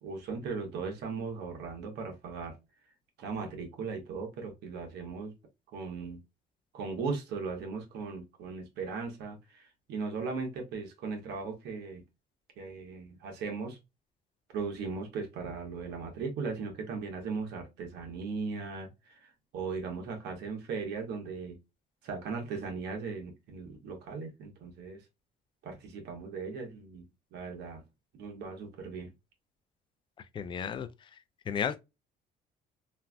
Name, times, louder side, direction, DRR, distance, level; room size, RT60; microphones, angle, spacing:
voice 1, 0.0-2.5 3.2-5.3 5.7-6.2 6.7-12.0 12.6-13.8 14.5-21.6 22.0-25.0 25.6-27.0 27.3-27.8 28.1-29.1, right 4 dB, 80° right, 1.2 m, -38 dB
voice 2, 30.3-30.9 31.5-31.8, left 7 dB, 30° left, 0.3 m, -32 dB
3.2 x 2.5 x 2.2 m
cardioid pair, 110°, 17 cm